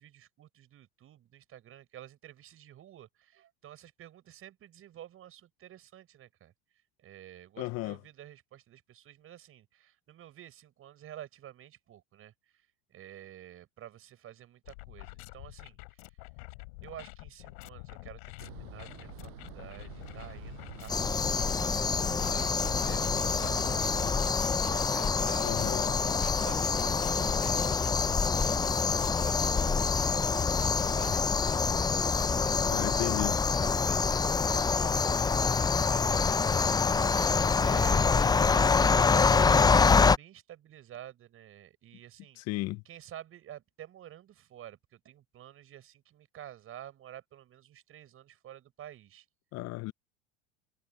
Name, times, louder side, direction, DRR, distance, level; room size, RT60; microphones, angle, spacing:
voice 1, 0.0-6.5 7.0-16.2 16.8-25.7 26.0-28.8 29.1-36.7 37.1-42.4 42.9-49.3, right 11 dB, 40° right, 7.2 m, -50 dB
voice 2, 7.6-8.0 25.4-25.9 32.7-33.4 42.4-42.8 49.5-49.9, left 20 dB, 50° left, 0.8 m, -34 dB
sound 1, 14.6-31.2, left 29 dB, 70° left, 3.8 m, -46 dB
sound 2, 18.4-24.1, right 26 dB, 60° right, 7.6 m, -47 dB
sound 3, 20.9-40.2, left 5 dB, 10° left, 0.6 m, -26 dB
supercardioid pair, 105°, 32 cm